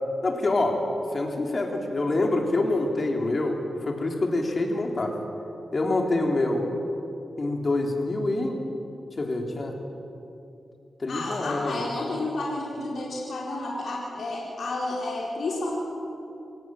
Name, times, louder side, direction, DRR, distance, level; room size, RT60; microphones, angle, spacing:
voice 1, 0.2-0.8 1.1-5.1 5.7-6.6 7.4-8.6 9.2-9.7 11.0-11.9, left 2 dB, 40° left, 2 dB, 3.4 m, -26 dB
voice 2, 11.1-15.8, left 2 dB, 70° left, -4 dB, 4.4 m, -31 dB
27.5 x 16.5 x 7.8 m, 2.7 s
wide cardioid pair, 100°, 0 cm